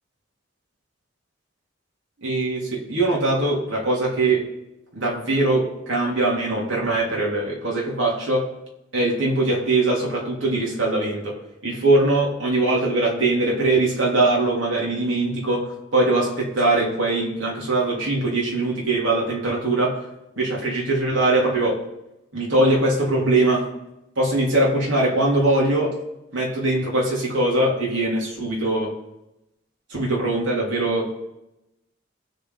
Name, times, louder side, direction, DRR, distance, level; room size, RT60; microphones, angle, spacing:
voice 1, 2.2-4.5 4.9-8.5 8.9-11.4 11.6-20.0 20.4-21.8 22.3-23.7 24.2-26.0 26.3-28.9 29.9-31.2, right 2 dB, 85° right, -3 dB, 3.4 m, -21 dB
18.5 x 6.7 x 4.0 m, 0.91 s
head